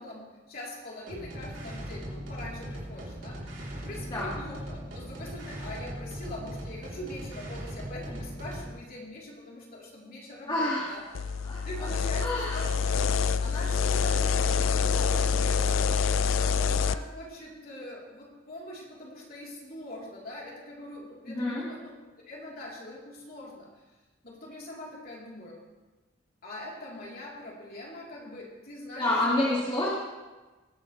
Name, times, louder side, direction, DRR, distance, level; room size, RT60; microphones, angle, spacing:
voice 1, 0.0-11.0 11.5-12.7 13.4-15.6 16.2-21.9 22.3-23.7 24.2-25.6 26.4-29.7, left 1 dB, 50° left, -4 dB, 3.6 m, -42 dB
sound 1, 1.1-8.8, equal, 75° right, 3.6 m, -39 dB
voice 2, 10.5-10.9 11.4-11.9 12.2-12.6 21.3-21.6 29.0-29.9, left 1 dB, 25° left, -6 dB, 2.1 m, -28 dB
sound 2, 11.1-17.0, left 6 dB, 90° left, 0.5 m, -26 dB
20.0 x 10.5 x 3.3 m, 1.2 s
head